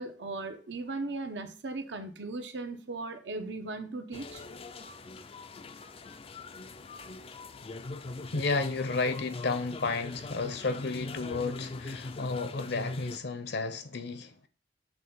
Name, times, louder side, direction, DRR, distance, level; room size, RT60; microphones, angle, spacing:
voice 1, 0.0-4.4, right 3 dB, 70° right, 1.0 m, -37 dB
sound 1, 4.1-13.2, left 3 dB, 30° left, 0.4 m, -41 dB
voice 2, 8.3-14.5, left 3 dB, 65° left, 0.8 m, -32 dB
7.4 x 3.4 x 5.5 m
head